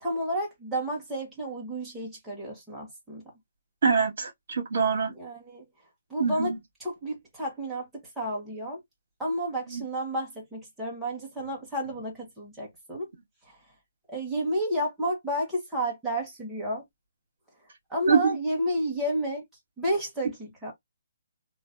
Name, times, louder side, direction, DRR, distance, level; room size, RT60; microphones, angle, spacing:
voice 1, 0.0-3.2 5.2-5.6 6.1-6.5 6.8-8.8 9.2-13.1 13.4-13.6 14.1-16.8 17.9-19.4 19.8-20.7, equal, 5° right, 1.1 m, -31 dB
voice 2, 3.8-5.1 6.2-6.6 9.7-9.8 18.1-18.2, right 5 dB, 45° right, 2.2 m, -24 dB
3.8 x 2.5 x 2.5 m
hypercardioid pair, 175°, 0 cm